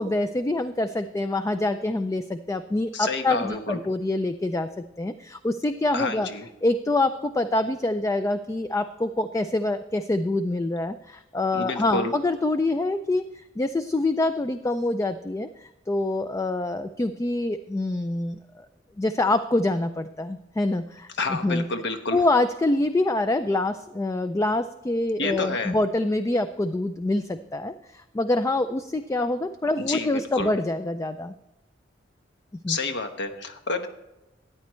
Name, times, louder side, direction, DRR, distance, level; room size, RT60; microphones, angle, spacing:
voice 1, 0.0-4.7 5.0-6.3 6.6-13.2 13.6-18.7 19.0-21.6 22.1-31.3 32.6-32.8, left 2 dB, 15° left, 10 dB, 0.3 m, -25 dB
voice 2, 2.9-3.8 5.9-6.5 11.5-12.1 21.2-22.2 25.2-25.7 29.8-30.5 32.7-33.9, left 3 dB, 65° left, 7 dB, 1.1 m, -29 dB
13.5 x 9.6 x 3.1 m, 0.99 s
head